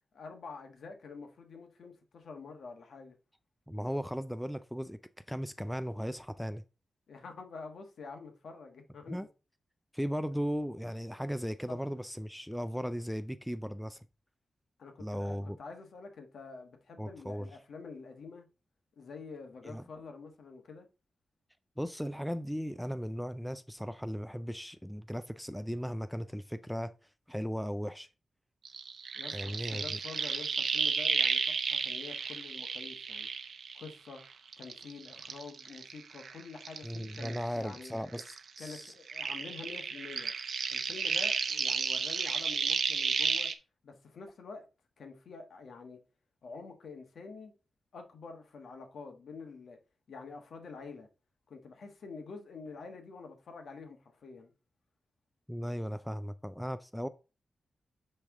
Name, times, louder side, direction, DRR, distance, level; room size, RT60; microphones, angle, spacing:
voice 1, 0.1-3.2 7.1-9.2 11.7-11.8 14.8-18.5 19.0-20.9 29.1-33.3 33.7-34.2 34.6-38.0 38.6-40.3 40.7-43.5 43.8-44.7 45.0-46.0 46.4-47.5 47.9-49.8 50.1-51.1 51.5-54.5, left 4 dB, 70° left, 1.3 m, -47 dB
voice 2, 3.7-5.0 5.3-6.6 9.1-9.3 9.9-14.1 15.0-15.6 17.0-17.5 19.6-19.8 21.8-26.9 27.3-28.1 29.3-30.0 36.8-38.9 55.5-57.1, equal, ahead, 0.3 m, -37 dB
sound 1, 28.6-34.2 34.5-37.9 38.1-43.5, right 6 dB, 65° right, 0.7 m, -33 dB
9.6 x 3.4 x 3.6 m
wide cardioid pair, 125°, 0 cm